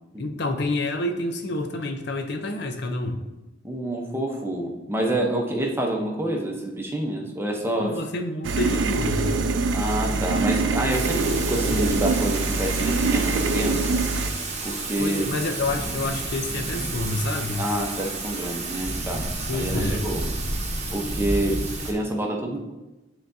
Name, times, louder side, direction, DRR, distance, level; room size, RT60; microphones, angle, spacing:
voice 1, 0.2-3.3 7.8-9.4 15.0-17.7 19.5-20.0, left 2 dB, 65° left, 5 dB, 0.6 m, -28 dB
voice 2, 3.6-7.9 9.7-14.0 14.6-15.3 17.6-20.3 20.9-22.6, right 1 dB, 15° right, 0 dB, 0.8 m, -27 dB
sound 1, 8.4-14.3, right 3 dB, 85° right, 0.5 m, -24 dB
Thunder / Rain, 10.9-21.9, right 2 dB, 40° right, 1.0 m, -31 dB
10.0 x 3.8 x 2.7 m, 1.1 s
head